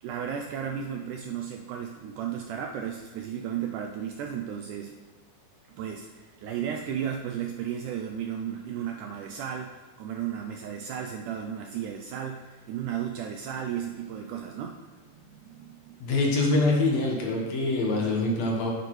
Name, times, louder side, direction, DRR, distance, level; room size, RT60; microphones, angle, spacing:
voice 1, 0.0-4.9 5.7-16.1, right 8 dB, 80° right, 3 dB, 1.8 m, -34 dB
voice 2, 16.0-18.7, left 2 dB, 60° left, -1 dB, 2.3 m, -24 dB
9.7 x 9.1 x 3.2 m, 1.3 s
omnidirectional pair, 4.0 m